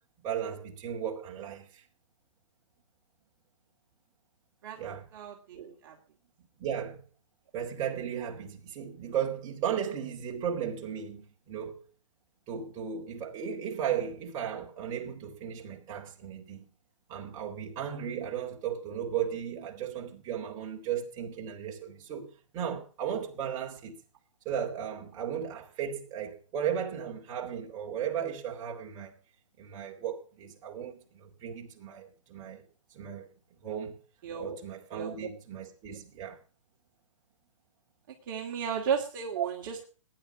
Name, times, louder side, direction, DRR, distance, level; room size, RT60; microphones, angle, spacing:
voice 1, 0.2-1.9 4.8-5.1 6.6-7.1 7.5-11.8 12.5-16.7 17.1-24.0 24.5-29.1 29.6-32.6 32.9-33.3 33.6-34.0 34.3-36.4 39.4-39.5, right 8 dB, 20° right, 3.6 m, -35 dB
voice 2, 5.1-6.0 34.2-34.6 34.9-35.1 38.3-39.8, right 7 dB, 35° right, 2.6 m, -34 dB
19.0 x 10.5 x 6.1 m
hypercardioid pair, 165°, 17 cm